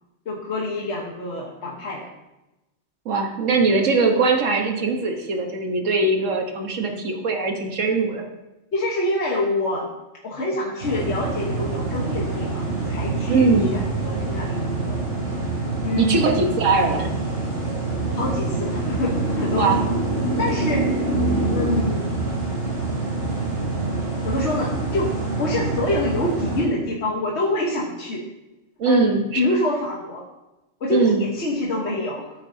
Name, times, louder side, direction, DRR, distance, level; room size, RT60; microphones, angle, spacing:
voice 1, 0.2-2.1 8.7-9.9 10.2-15.0 15.8-16.2 18.1-19.7 20.4-20.9 21.5-22.1 24.2-25.1 25.4-28.2 28.8-29.1 29.4-30.3 30.8-32.3, left 1 dB, 65° left, -3 dB, 1.5 m, -26 dB
voice 2, 3.0-8.2 13.3-13.7 16.0-17.1 19.5-19.8 28.8-29.4 30.9-31.2, right 3 dB, 90° right, 2 dB, 1.6 m, -21 dB
sound 1, 10.8-26.6, right 2 dB, 65° right, 3.4 m, -25 dB
13.0 x 8.8 x 2.8 m, 0.99 s
omnidirectional pair, 1.3 m